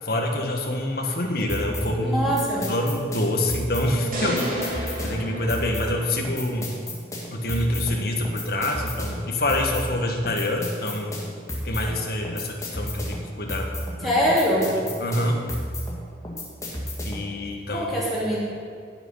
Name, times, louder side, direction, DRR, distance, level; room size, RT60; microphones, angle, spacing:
voice 1, 0.0-2.3 2.7-6.7 7.3-11.2 11.6-13.7 14.0-14.2 15.0-15.4 17.0-18.0, left 1 dB, 55° left, 2 dB, 1.5 m, -26 dB
sound 1, 1.5-17.4, left 1 dB, 20° left, 2.0 m, -33 dB
voice 2, 2.0-2.7 14.0-14.7 17.7-18.4, equal, ahead, -9 dB, 3.3 m, -23 dB
sound 2, 4.1-6.4, equal, 50° right, 2.6 m, -31 dB
16.5 x 6.3 x 5.6 m, 2.2 s
head